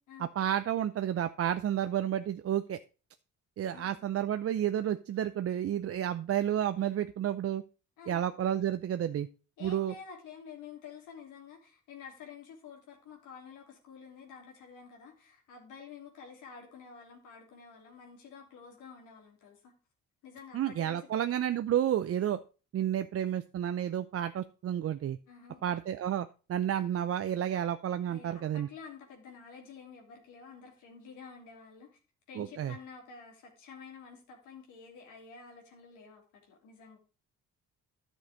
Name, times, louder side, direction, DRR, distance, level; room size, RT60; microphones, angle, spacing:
voice 1, 0.2-2.8 3.6-7.6 8.1-9.3 9.6-9.9 20.5-22.4 22.7-25.2 25.6-28.7 32.3-32.7, right 10 dB, 50° right, 0.6 m, -31 dB
voice 2, 9.6-19.7 20.2-21.4 25.3-25.8 28.1-31.9 32.3-37.0, left 6 dB, 90° left, 3.1 m, -50 dB
10.5 x 6.4 x 5.0 m
cardioid pair, 90°, 30 cm